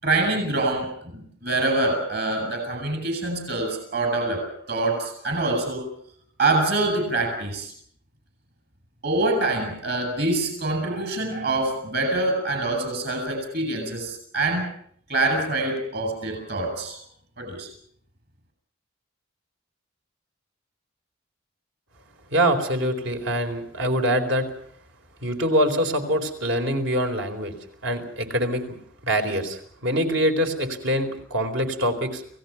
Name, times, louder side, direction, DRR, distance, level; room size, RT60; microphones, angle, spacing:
voice 1, 0.0-5.9 6.4-7.7 9.0-14.7 15.1-17.0 17.4-17.7, right 2 dB, 50° right, 5 dB, 7.4 m, -25 dB
voice 2, 22.3-24.5 25.2-27.5 27.8-28.8 29.0-32.2, equal, 70° right, 5 dB, 4.2 m, -24 dB
29.5 x 18.0 x 5.8 m, 0.62 s
head